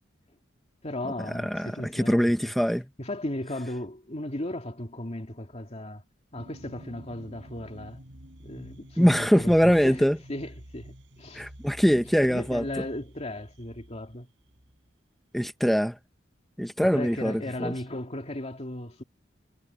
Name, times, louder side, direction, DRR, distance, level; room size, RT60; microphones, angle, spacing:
voice 1, 0.8-2.5 3.0-6.0 6.3-8.0 8.4-11.5 12.2-14.3 16.9-19.0, left 1 dB, 35° left, 2.6 m, -36 dB
voice 2, 1.3-2.9 9.0-10.2 11.3-12.8 15.3-16.0 16.6-17.7, equal, ahead, 0.9 m, -23 dB
sound 1, 6.4-14.9, equal, 70° right, 5.6 m, -49 dB
head